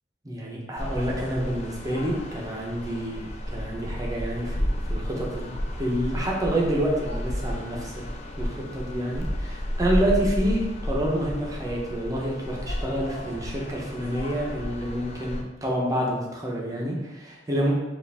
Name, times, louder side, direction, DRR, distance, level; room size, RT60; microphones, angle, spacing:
voice 1, 0.2-8.1 8.4-17.7, right 1 dB, 20° right, -2 dB, 0.7 m, -28 dB
sound 1, 0.8-15.4, equal, 35° left, 0.4 m, -32 dB
4.6 x 2.5 x 3.4 m, 1.1 s
head